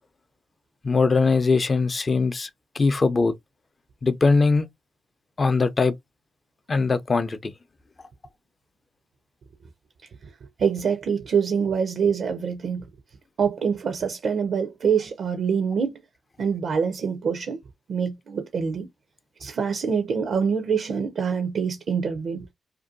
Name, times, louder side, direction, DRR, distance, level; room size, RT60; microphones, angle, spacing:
voice 1, 0.8-2.5 2.7-3.3 4.0-4.7 5.4-5.9 6.7-7.5, left 4 dB, 45° left, 0.5 m, -21 dB
voice 2, 10.6-12.9 13.4-16.0 16.4-17.6 17.9-18.9 19.4-22.5, right 6 dB, 65° right, 0.4 m, -25 dB
2.5 x 2.2 x 2.5 m
supercardioid pair, 45°, 0 cm